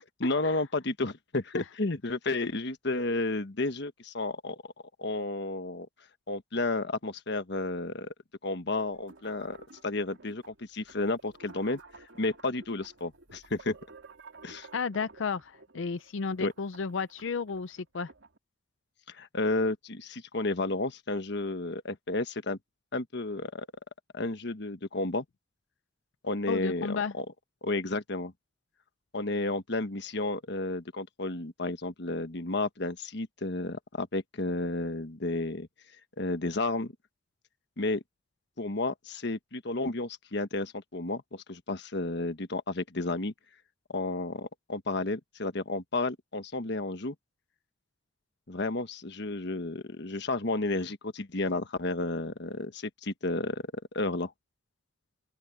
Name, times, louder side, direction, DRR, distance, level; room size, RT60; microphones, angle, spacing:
voice 1, 0.2-4.6 5.0-5.9 6.3-8.1 8.4-9.6 9.8-11.8 12.2-13.8 14.4-14.7 16.4-16.5 19.1-22.6 22.9-23.7 24.1-25.2 26.2-27.2 27.6-28.3 29.1-35.7 36.2-36.9 37.8-38.0 38.6-43.3 43.9-47.1 48.5-54.3, left 2 dB, 65° left, 1.3 m, -32 dB
sound 1, 8.8-18.4, right 3 dB, 90° right, 2.5 m, -54 dB
voice 2, 14.7-18.1 26.5-27.1, left 5 dB, 80° left, 0.5 m, -33 dB
open air
head